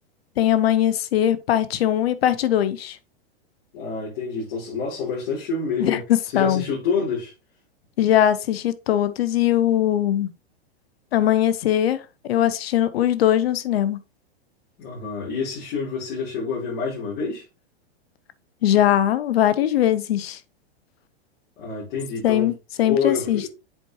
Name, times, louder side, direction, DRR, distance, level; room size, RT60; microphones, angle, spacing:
voice 1, 0.4-3.0 5.8-6.7 8.0-10.3 11.1-14.0 18.6-20.4 22.2-23.6, left 11 dB, 70° left, 0.9 m, -21 dB
voice 2, 3.7-6.0 6.3-7.3 14.8-17.4 21.6-22.5 22.8-23.5, left 5 dB, 55° left, 3.8 m, -27 dB
7.7 x 4.6 x 3.0 m
hypercardioid pair, 125°, 31 cm